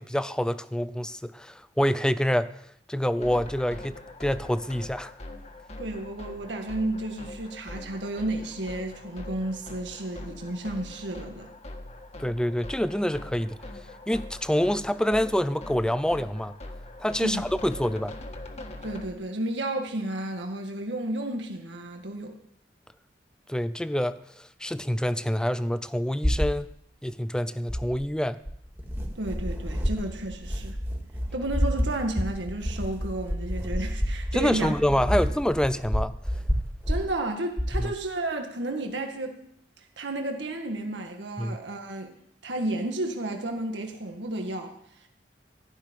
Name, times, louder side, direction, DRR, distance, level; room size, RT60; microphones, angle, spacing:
voice 1, 0.0-2.5 2.9-5.1 12.2-13.6 14.1-16.5 17.0-18.1 23.5-26.7 27.0-28.4 34.3-36.1 37.8-37.9 41.4-41.6, equal, 5° left, 14 dB, 0.5 m, -27 dB
sound 1, 3.2-19.1, left 1 dB, 40° left, 1.6 m, -42 dB
voice 2, 5.8-11.5 17.2-17.4 18.8-22.4 29.2-30.8 31.3-34.8 35.1-35.2 36.9-39.4 40.0-42.1 42.4-44.7, right 1 dB, 90° right, 3 dB, 1.9 m, -32 dB
sound 2, 26.2-26.6 27.7-28.1 28.5-37.1 37.6-37.9, equal, 15° right, 2.0 m, -29 dB
15.0 x 6.8 x 10.0 m, 0.71 s
head